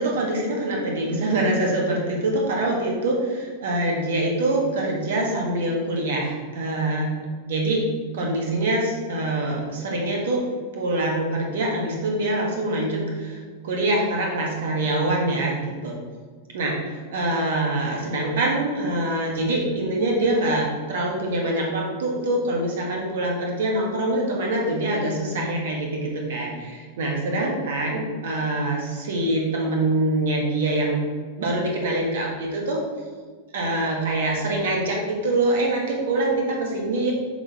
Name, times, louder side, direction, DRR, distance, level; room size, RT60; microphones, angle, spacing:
voice 1, 0.0-7.1 7.5-7.8 8.1-10.4 10.7-16.0 16.5-31.0 31.4-32.8 33.5-37.1, right 1 dB, 60° right, -1 dB, 1.5 m, -24 dB
6.8 x 3.9 x 4.2 m, 1.5 s
figure-of-eight pair, 90°, 0 cm